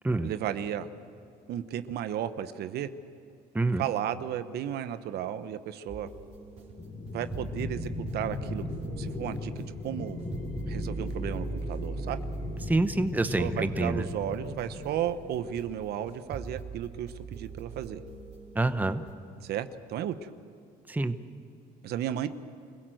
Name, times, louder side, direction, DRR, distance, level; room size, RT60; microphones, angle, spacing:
voice 1, 0.2-0.9 1.5-2.9 3.8-6.1 7.1-8.6 9.0-10.2 10.7-12.2 13.2-18.0 19.4-20.3 21.8-22.3, right 10 dB, 70° right, 11 dB, 1.0 m, -34 dB
sound 1, 5.9-19.1, right 4 dB, 40° right, 3.8 m, -41 dB
sound 2, 6.8-14.8, left 2 dB, 40° left, 3.1 m, -37 dB
voice 2, 12.7-14.1 18.5-19.0 20.9-21.1, right 2 dB, 10° right, 10 dB, 0.9 m, -27 dB
26.0 x 16.5 x 7.9 m, 2.5 s
cardioid pair, 110°, 17 cm